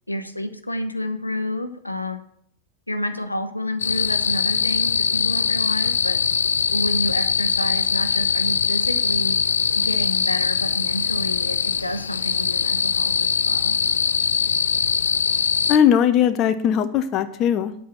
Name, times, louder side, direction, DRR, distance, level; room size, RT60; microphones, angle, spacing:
voice 1, 0.1-2.3 2.9-6.2 6.7-9.4 9.7-13.8, left 1 dB, 85° left, 7 dB, 1.1 m, -29 dB
sound 1, 3.8-15.8, left 6 dB, 70° left, 0.5 m, -22 dB
voice 2, 15.7-17.7, left 9 dB, 35° left, 9 dB, 0.9 m, -19 dB
10.0 x 8.4 x 6.3 m, 0.68 s
figure-of-eight pair, 90°, 0 cm